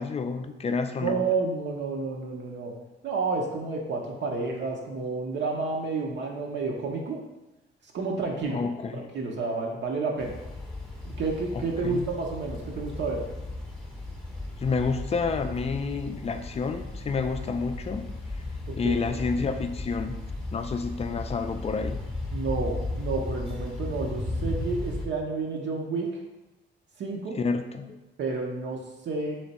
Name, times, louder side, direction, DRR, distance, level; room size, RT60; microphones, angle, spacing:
voice 1, 0.0-1.2 8.5-9.1 11.5-12.1 14.6-18.1 18.8-20.2 20.5-22.0 27.4-28.0, left 4 dB, 30° left, 7 dB, 0.4 m, -29 dB
voice 2, 1.0-2.7 3.0-7.2 7.8-8.6 8.9-10.4 11.2-13.2 18.7-19.2 22.3-26.2 27.0-27.4 28.2-29.4, right 4 dB, 65° right, 0 dB, 0.7 m, -30 dB
sound 1, 10.2-25.1, left 2 dB, 5° left, 0.8 m, -35 dB
3.3 x 3.2 x 4.1 m, 1.0 s
cardioid pair, 90°, 20 cm